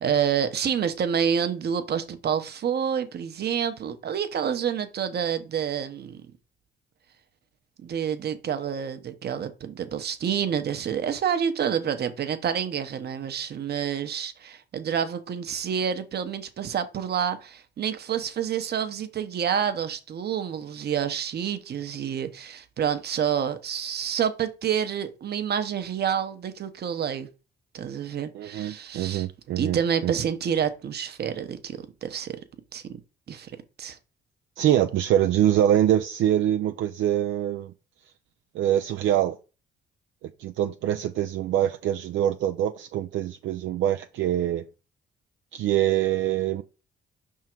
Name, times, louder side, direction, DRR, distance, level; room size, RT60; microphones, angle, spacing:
voice 1, 0.0-6.2 7.8-27.3 27.7-29.3 29.5-32.4 32.7-32.8 33.3-33.5 33.8-34.0, right 8 dB, 55° right, 0.9 m, -28 dB
voice 2, 28.3-29.8 30.0-30.1 34.6-37.7 38.5-39.4 40.2-44.6 45.5-46.6, right 11 dB, 75° right, 0.5 m, -24 dB
5.6 x 3.7 x 4.5 m
cardioid pair, 90°, 20 cm